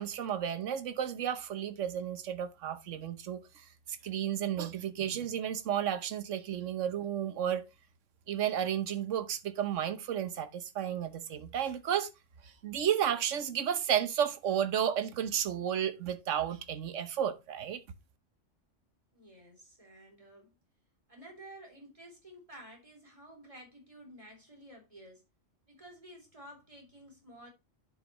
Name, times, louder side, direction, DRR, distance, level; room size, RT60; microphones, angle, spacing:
voice 1, 0.0-7.6 8.3-12.1 12.4-17.8, right 9 dB, 75° right, 1.3 m, -32 dB
voice 2, 19.1-20.5 21.1-25.2 25.7-27.5, right 1 dB, 25° right, 3.4 m, -52 dB
10.5 x 6.1 x 3.0 m
omnidirectional pair, 1.3 m